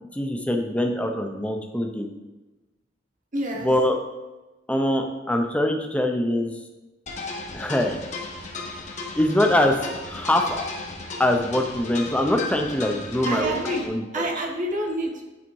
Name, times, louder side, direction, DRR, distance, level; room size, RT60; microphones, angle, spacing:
voice 1, 0.1-2.1 3.6-4.0 4.7-6.5 7.5-8.0 9.1-9.8 10.0-10.6 11.2-13.6 13.9-14.3, left 1 dB, 5° left, 3 dB, 0.7 m, -23 dB
voice 2, 3.3-3.7 13.2-13.8 14.1-15.2, right 1 dB, 45° right, 0 dB, 1.3 m, -27 dB
sound 1, 7.1-13.9, left 3 dB, 40° left, 1.1 m, -35 dB
8.7 x 4.1 x 4.7 m, 1.1 s
head